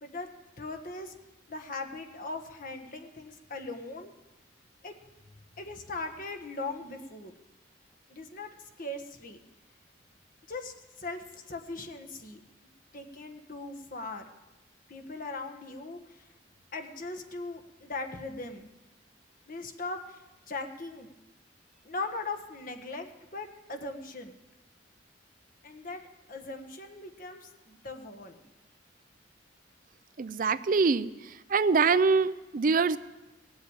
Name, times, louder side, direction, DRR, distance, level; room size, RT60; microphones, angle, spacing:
voice 1, 0.6-1.1 1.5-4.1 4.8-4.9 5.6-7.3 8.1-8.5 8.8-9.4 10.5-12.4 12.9-14.2 14.9-16.3 16.7-18.7 19.5-21.1 21.8-24.4 25.6-26.0 26.3-28.4, left 3 dB, 45° left, 4 dB, 1.4 m, -39 dB
voice 2, 30.2-31.1 31.5-33.0, right 4 dB, 45° right, 14 dB, 0.4 m, -24 dB
18.5 x 7.9 x 8.9 m, 1.1 s
head